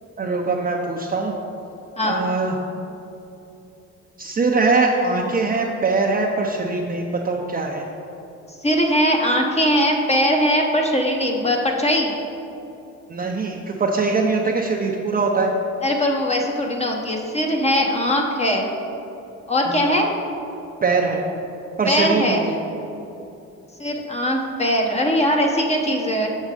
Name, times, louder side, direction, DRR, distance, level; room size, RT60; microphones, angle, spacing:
voice 1, 0.2-1.3 2.0-2.6 4.2-7.9 13.1-15.5 19.7-19.9 20.8-21.2 21.8-22.6, right 3 dB, 30° right, -1 dB, 0.6 m, -22 dB
voice 2, 2.0-2.3 8.6-12.1 15.8-18.7 19.5-20.1 21.9-22.5 23.8-26.3, equal, 20° left, 1 dB, 1.0 m, -20 dB
6.5 x 6.3 x 4.9 m, 2.8 s
cardioid pair, 90°, 30 cm